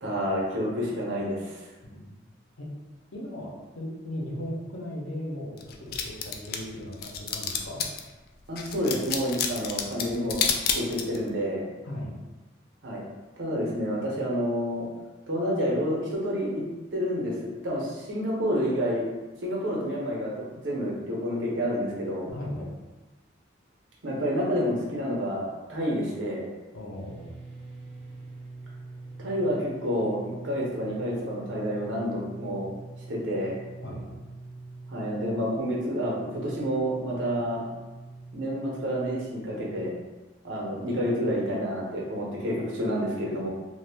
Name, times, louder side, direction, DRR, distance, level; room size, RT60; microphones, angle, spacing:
voice 1, 0.0-1.6 8.5-10.4 10.7-11.6 12.8-13.0 13.4-14.9 15.3-16.6 16.9-19.0 19.4-22.3 24.0-26.5 29.2-32.7 33.1-33.6 34.9-37.6 38.3-39.9 40.4-43.5, equal, 85° right, -4 dB, 0.9 m, -29 dB
voice 2, 3.1-7.9 11.8-12.2 22.3-22.7 26.7-27.3 33.8-34.2, left 1 dB, 85° left, -3 dB, 0.8 m, -37 dB
sound 1, 5.6-8.1 8.6-11.3, left 7 dB, 50° left, 0.3 m, -29 dB
sound 2, 26.9-39.7, right 3 dB, 35° right, 0.5 m, -44 dB
2.5 x 2.4 x 3.5 m, 1.2 s
head